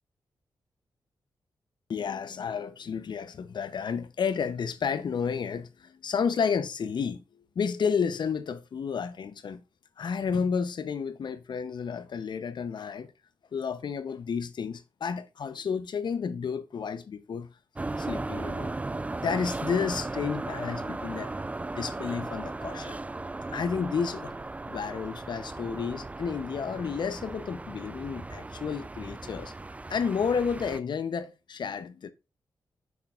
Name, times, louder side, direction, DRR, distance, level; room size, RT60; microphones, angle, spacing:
voice 1, 1.9-7.2 7.6-9.6 10.0-13.1 13.5-17.5 18.0-18.8 19.2-21.3 21.7-23.0 23.5-24.4 24.7-29.5 29.9-32.1, left 6 dB, 65° left, 0.7 m, -31 dB
sound 1, 17.8-30.8, right 2 dB, 15° right, 0.3 m, -36 dB
7.2 x 5.9 x 2.4 m
cardioid pair, 55°, 8 cm